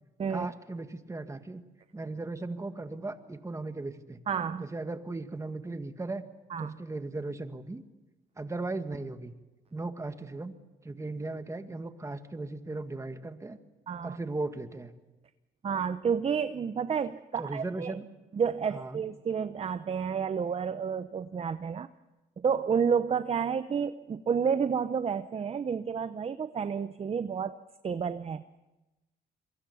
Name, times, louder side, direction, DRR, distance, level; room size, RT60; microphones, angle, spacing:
voice 1, 0.3-1.6 1.9-4.2 4.5-6.2 6.6-7.8 8.4-9.3 9.7-10.5 10.8-13.6 14.0-14.9 17.4-18.1 18.7-19.0, right 2 dB, 15° right, 9 dB, 1.8 m, -37 dB
voice 2, 4.3-4.7 6.5-6.7 13.9-14.2 15.6-18.0 18.3-21.9 22.4-27.6 27.8-28.4, right 6 dB, 30° right, 12 dB, 0.7 m, -30 dB
27.5 x 23.5 x 7.1 m, 1.1 s
cardioid pair, 100°, 19 cm